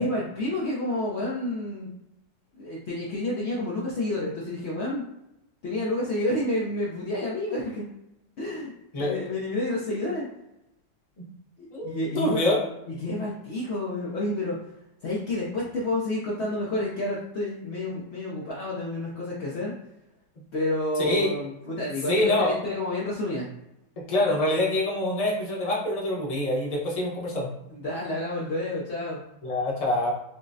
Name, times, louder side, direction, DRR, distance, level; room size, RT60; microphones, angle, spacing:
voice 1, 0.0-1.9 2.5-5.0 5.6-7.8 8.4-8.7 9.0-10.3 11.8-12.4 12.9-14.6 15.0-19.7 20.5-23.5 27.7-29.2, left 1 dB, 75° left, -5 dB, 0.6 m, -29 dB
voice 2, 8.9-9.3 11.7-12.6 21.1-21.3 22.1-22.5 24.1-27.5 29.4-30.1, left 1 dB, 35° left, -4 dB, 0.6 m, -25 dB
5.5 x 2.0 x 2.6 m, 0.88 s
omnidirectional pair, 1.9 m